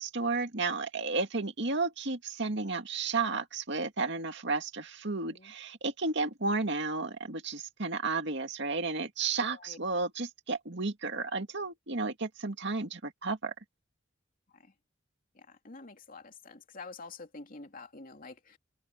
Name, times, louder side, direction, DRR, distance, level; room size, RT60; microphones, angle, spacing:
voice 1, 0.0-13.5, right 3 dB, 65° right, 2.2 m, -32 dB
voice 2, 15.3-18.6, left 3 dB, 45° left, 2.8 m, -48 dB
head